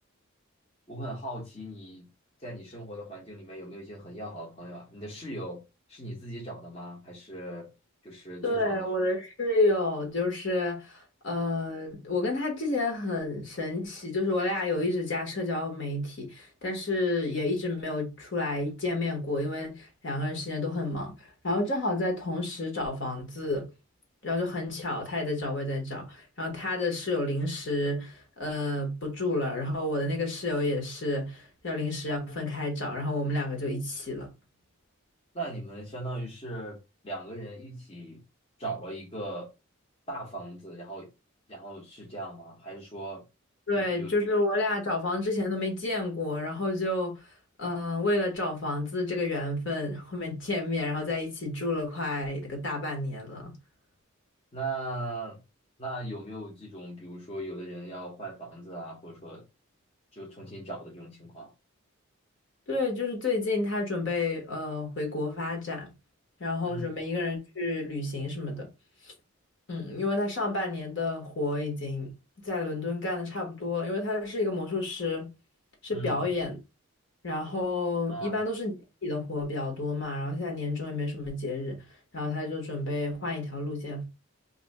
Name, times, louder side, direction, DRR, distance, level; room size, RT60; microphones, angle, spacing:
voice 1, 0.9-2.1 2.4-5.6 5.9-7.7 8.0-8.8 35.3-38.2 38.6-39.5 40.1-41.1 41.5-43.2 43.7-44.1 54.5-55.4 55.8-59.4 60.1-61.5 66.6-66.9 75.9-76.3 78.1-78.4, right 2 dB, 30° left, 0.9 m, -39 dB
voice 2, 8.4-23.7 24.2-34.3 43.7-47.3 47.6-53.5 62.7-65.9 66.4-68.7 69.0-69.1 69.7-72.1 72.4-75.3 75.8-76.6 77.2-78.7 79.0-81.8 82.1-84.0, left 2 dB, 55° left, 1.2 m, -30 dB
2.8 x 2.6 x 4.1 m
head